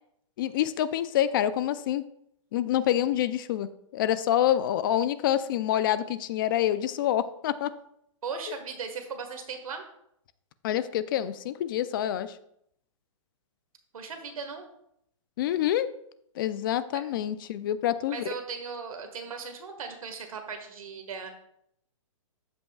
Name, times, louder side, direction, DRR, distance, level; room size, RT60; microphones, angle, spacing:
voice 1, 0.4-2.0 2.5-7.7 8.5-8.6 10.6-12.4 15.4-15.9 16.4-18.3, left 11 dB, 40° left, 14 dB, 0.4 m, -27 dB
voice 2, 8.2-9.9 13.9-14.7 16.9-17.0 18.1-21.3, right 5 dB, 85° right, 5 dB, 1.6 m, -37 dB
13.5 x 5.4 x 2.3 m, 0.74 s
hypercardioid pair, 150°, 17 cm